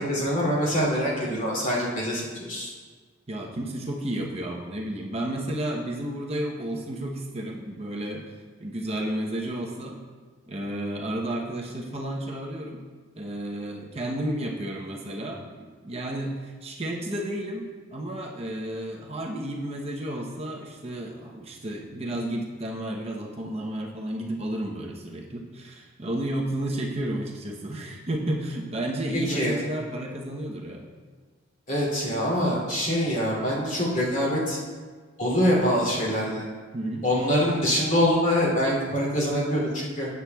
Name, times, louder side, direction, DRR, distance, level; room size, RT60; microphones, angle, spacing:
voice 1, 0.0-2.7 29.3-29.6 31.7-34.6 35.2-36.4 37.0-40.1, equal, 40° left, -5 dB, 2.6 m, -24 dB
voice 2, 3.3-8.3 8.6-10.0 10.5-12.8 13.2-15.5 15.8-30.8 36.7-37.0, right 1 dB, 30° right, -1 dB, 0.8 m, -32 dB
13.5 x 8.3 x 2.3 m, 1.5 s
head